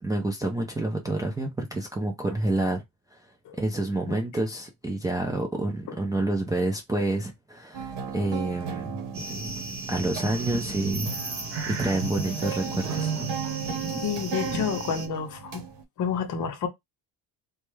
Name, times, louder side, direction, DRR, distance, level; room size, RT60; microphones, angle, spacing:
voice 1, 0.0-2.8 3.1-3.2 3.6-9.0 9.9-11.1 11.7-13.1, right 2 dB, 10° right, 0.4 m, -28 dB
sound 1, 7.7-15.8, right 6 dB, 85° right, 1.0 m, -35 dB
Cicada far thunder, 9.1-15.1, right 2 dB, 30° right, 0.9 m, -35 dB
voice 2, 14.0-15.6 16.0-16.7, left 7 dB, 50° left, 0.7 m, -29 dB
3.3 x 2.1 x 3.1 m
cardioid pair, 145°, 40 cm